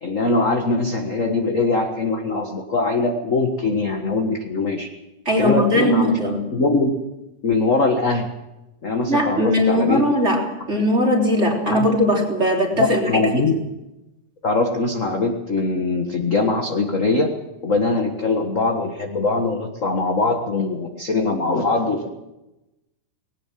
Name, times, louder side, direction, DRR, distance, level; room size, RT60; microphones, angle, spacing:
voice 1, 0.0-4.9 5.3-6.2 6.5-6.9 7.4-8.3 8.8-10.0 11.7-11.9 13.1-13.6 14.4-17.3 17.6-22.1, left 3 dB, 40° left, 3 dB, 1.1 m, -22 dB
voice 2, 5.3-6.4 9.1-10.4 10.7-13.5, equal, 20° right, 0 dB, 3.7 m, -19 dB
20.0 x 18.0 x 7.5 m, 0.99 s
omnidirectional pair, 3.7 m